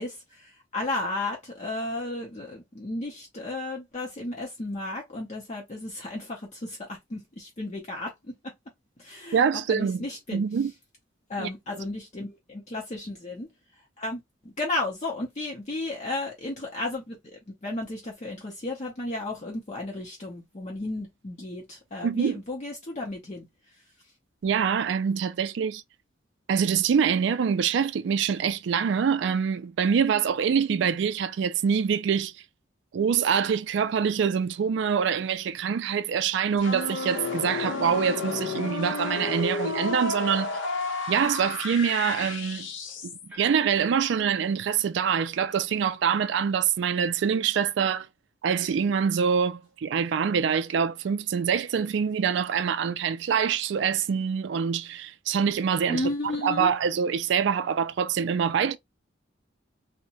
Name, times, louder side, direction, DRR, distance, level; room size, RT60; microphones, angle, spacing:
voice 1, 0.0-8.5 9.0-10.4 11.3-13.5 14.0-14.2 14.4-17.2 17.5-23.5 55.9-56.7, left 2 dB, 35° left, 0.6 m, -33 dB
voice 2, 9.3-10.1 10.3-10.7 11.4-11.5 22.0-22.4 24.4-25.8 26.5-32.3 32.9-40.5 41.1-42.7 43.4-48.1 48.4-56.0 56.4-58.8, right 7 dB, 60° right, 0.3 m, -25 dB
sound 1, 36.6-43.3, left 3 dB, 75° left, 0.7 m, -32 dB
sound 2, 39.0-39.6 41.4-41.9 43.3-43.7, equal, 5° right, 0.5 m, -47 dB
2.8 x 2.1 x 2.7 m
head